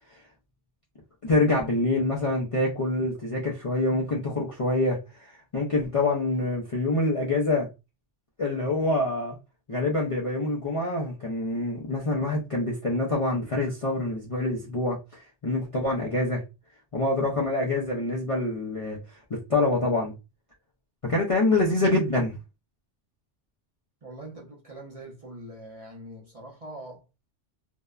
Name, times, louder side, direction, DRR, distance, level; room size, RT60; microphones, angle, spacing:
voice 1, 1.2-7.7 8.4-9.4 9.7-16.4 16.9-19.0 19.3-20.1 21.0-22.4, left 2 dB, 45° left, 0.4 m, -26 dB
voice 2, 24.0-27.0, right 1 dB, 40° right, 0.6 m, -43 dB
2.7 x 2.1 x 2.3 m
omnidirectional pair, 1.2 m